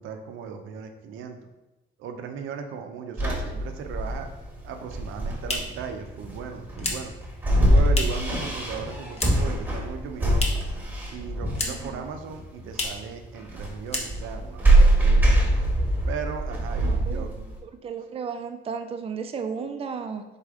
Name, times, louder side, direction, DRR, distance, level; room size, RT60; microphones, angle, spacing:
voice 1, 0.0-1.4 2.0-4.3 4.6-7.1 7.5-10.6 11.1-15.4 16.1-17.5, right 6 dB, 85° right, 6 dB, 0.5 m, -37 dB
sound 1, 3.2-17.6, right 1 dB, 10° right, 1.2 m, -23 dB
sound 2, 5.1-8.4 8.6-9.6 9.9-10.8 11.1-12.0 12.3-12.4 12.7-13.1 13.5-13.6 13.8-14.5, left 2 dB, 30° left, 0.8 m, -33 dB
voice 2, 11.6-12.1 16.8-17.3 17.6-20.2, right 6 dB, 30° right, 7 dB, 0.4 m, -34 dB
4.1 x 3.3 x 3.5 m, 1.0 s
cardioid pair, 90°, 20 cm